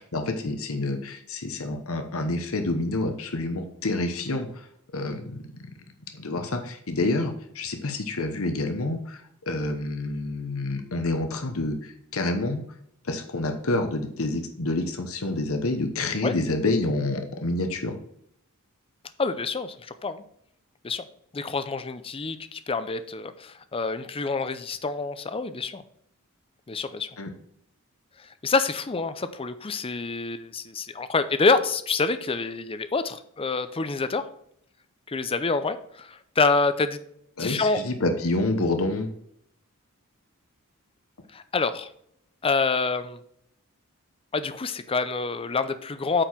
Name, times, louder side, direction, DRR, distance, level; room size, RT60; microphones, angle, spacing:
voice 1, 0.1-4.7 4.9-5.4 6.1-12.6 13.0-18.0 27.2-27.3 37.4-39.1, left 2 dB, 70° left, 6 dB, 1.1 m, -28 dB
voice 2, 19.2-20.2 20.8-21.0 21.3-25.8 26.7-27.1 28.4-34.2 35.1-37.0 37.4-37.8 41.3-41.9 42.4-43.2 44.3-46.2, left 4 dB, 25° left, 12 dB, 0.5 m, -27 dB
8.9 x 4.7 x 4.5 m, 0.70 s
head